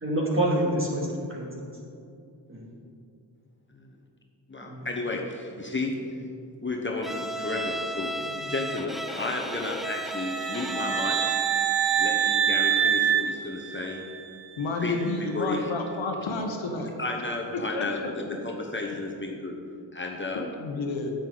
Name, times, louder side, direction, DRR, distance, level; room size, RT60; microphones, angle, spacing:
voice 1, 0.0-1.7 2.5-2.6 4.6-4.9 8.3-8.4, right 1 dB, 25° right, -3 dB, 2.3 m, -27 dB
voice 2, 4.5-6.0 6.6-11.2 12.0-14.0 14.8-15.7 17.0-19.6 19.9-20.5, left 2 dB, 25° left, 1 dB, 1.0 m, -32 dB
Bowed string instrument, 7.0-11.6, right 1 dB, ahead, 0.5 m, -34 dB
sound 1, 10.2-14.3, right 9 dB, 70° right, 0.6 m, -25 dB
voice 3, 14.6-16.9 17.5-18.1 20.6-21.1, left 3 dB, 85° left, 3 dB, 1.1 m, -30 dB
9.2 x 7.9 x 3.9 m, 2.5 s
cardioid pair, 65°, 46 cm